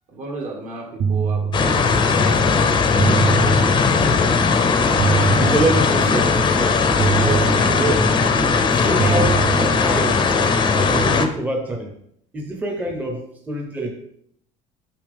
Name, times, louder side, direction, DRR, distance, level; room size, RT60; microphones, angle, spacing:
voice 1, 0.1-2.6, right 3 dB, 55° right, -1 dB, 2.1 m, -34 dB
sound 1, 1.0-2.2 3.0-4.2 5.0-6.2 7.0-8.2 9.0-10.2, right 6 dB, 40° right, 0.5 m, -24 dB
sound 2, 1.5-11.3, left 4 dB, 30° left, 0.6 m, -18 dB
voice 2, 5.4-6.9 7.2-8.3 8.7-10.3 10.7-11.9 12.3-13.9, right 2 dB, 10° right, 1 dB, 0.8 m, -26 dB
6.9 x 5.5 x 3.5 m, 0.70 s
cardioid pair, 145°, 15 cm